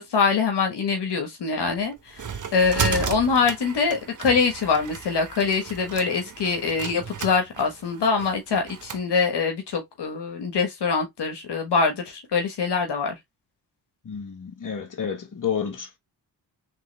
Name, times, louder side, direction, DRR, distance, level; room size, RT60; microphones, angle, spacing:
voice 1, 0.0-2.2 2.5-13.2, left 5 dB, 65° left, 1.3 m, -24 dB
sound 1, 1.7-9.0, right 7 dB, 45° right, 1.0 m, -34 dB
voice 2, 14.0-16.0, left 7 dB, 45° left, 1.4 m, -30 dB
3.7 x 3.4 x 3.1 m
supercardioid pair, 50°, 43 cm